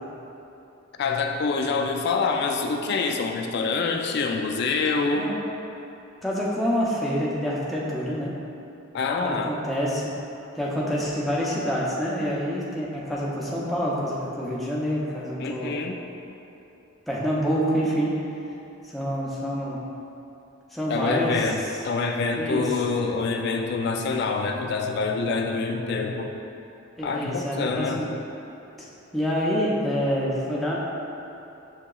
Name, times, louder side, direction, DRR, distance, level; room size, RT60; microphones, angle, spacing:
voice 1, 1.0-5.3 8.9-9.5 15.4-16.0 20.9-26.3 27.0-28.1, left 4 dB, 50° left, 3 dB, 0.3 m, -26 dB
voice 2, 6.2-8.3 9.2-10.2 10.6-15.8 17.1-18.2 18.9-19.8 20.7-21.8 22.4-22.7 27.0-28.1 28.8-28.9 29.1-30.8, equal, ahead, -7 dB, 0.5 m, -27 dB
7.3 x 2.8 x 2.3 m, 2.9 s
head